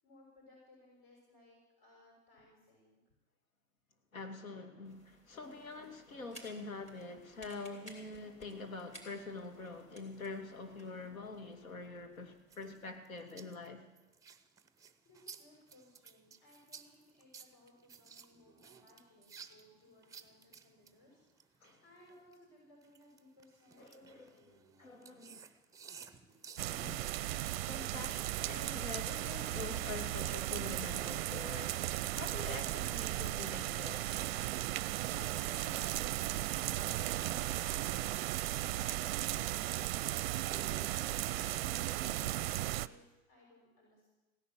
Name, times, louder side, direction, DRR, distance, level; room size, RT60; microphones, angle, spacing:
voice 1, 0.0-3.0 15.0-24.6 34.5-44.1, left 2 dB, 45° left, -2 dB, 6.4 m, -60 dB
voice 2, 4.1-13.8 21.6-21.8 23.8-25.5 27.3-34.3, left 3 dB, 75° left, 5 dB, 2.3 m, -46 dB
sound 1, 4.8-13.0, right 1 dB, 15° left, 3.9 m, -59 dB
sound 2, 12.5-22.3 22.8-27.8, right 5 dB, 10° right, 0.7 m, -55 dB
sound 3, 26.6-42.9, right 15 dB, 45° right, 0.6 m, -36 dB
16.5 x 10.5 x 7.6 m, 1.1 s
hypercardioid pair, 105°, 41 cm